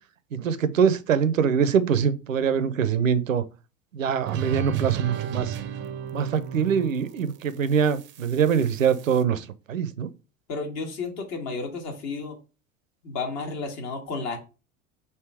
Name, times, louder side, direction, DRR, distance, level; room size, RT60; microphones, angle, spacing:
voice 1, 0.3-3.4 3.9-5.6 6.1-10.1, right 7 dB, 85° right, 0.5 m, -23 dB
sound 1, 4.2-9.2, right 11 dB, 30° right, 0.5 m, -33 dB
voice 2, 10.5-12.4 13.0-14.4, left 4 dB, 45° left, 1.4 m, -32 dB
3.5 x 2.7 x 4.5 m
figure-of-eight pair, 80°, 38 cm